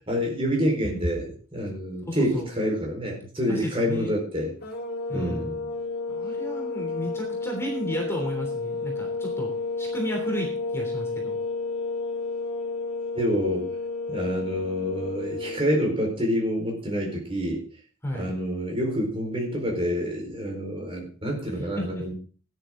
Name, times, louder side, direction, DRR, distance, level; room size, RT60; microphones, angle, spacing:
voice 1, 0.1-4.5 5.1-5.7 13.1-13.7 14.1-17.6 18.1-22.1, equal, 25° right, 0 dB, 4.5 m, -27 dB
voice 2, 2.0-2.5 3.5-4.1 5.1-5.5 6.1-9.5 9.8-11.4 18.0-18.3 21.6-22.0, equal, 10° left, 1 dB, 3.2 m, -33 dB
sound 1, 4.6-15.7, left 3 dB, 45° left, 3.9 m, -31 dB
15.5 x 10.5 x 3.8 m, 0.40 s
head